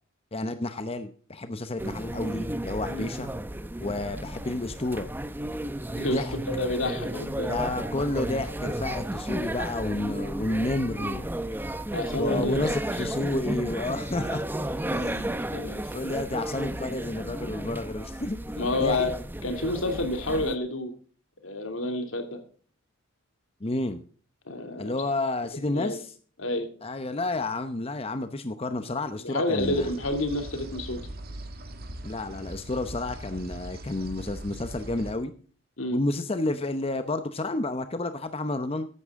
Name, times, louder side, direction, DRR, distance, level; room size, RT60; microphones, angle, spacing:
voice 1, 0.3-3.3 3.8-5.1 6.1-6.4 7.5-11.3 12.1-14.5 14.9-15.4 15.9-18.4 18.8-19.1 23.6-24.0 24.8-26.1 26.8-29.9 32.0-35.3 35.9-38.9, left 2 dB, 30° left, 9 dB, 0.8 m, -30 dB
sound 1, 1.8-20.6, right 1 dB, 10° right, 0.9 m, -33 dB
voice 2, 6.0-7.5 11.9-13.1 15.5-15.8 18.6-19.1 19.4-20.9 21.4-22.4 24.5-24.9 25.7-26.0 26.4-26.7 29.2-31.0 35.8-36.0, left 2 dB, 75° left, 6 dB, 2.7 m, -29 dB
sound 2, 29.6-35.1, right 1 dB, 50° right, 2.0 m, -40 dB
15.0 x 11.0 x 3.7 m, 0.42 s
head